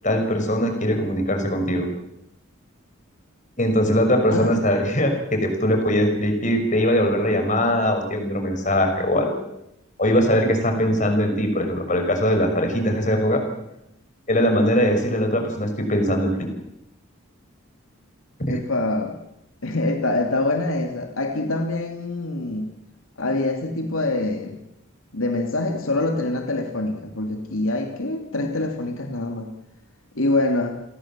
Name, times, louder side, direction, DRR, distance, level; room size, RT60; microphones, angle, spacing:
voice 1, 0.0-1.9 3.6-9.4 10.0-13.4 14.3-16.5 18.5-18.6, equal, 35° left, 5 dB, 6.1 m, -21 dB
voice 2, 18.5-19.1 19.6-22.7 23.2-24.6 25.1-29.5 30.1-30.7, left 2 dB, 75° left, 3 dB, 2.8 m, -25 dB
30.0 x 22.0 x 7.6 m, 0.84 s
head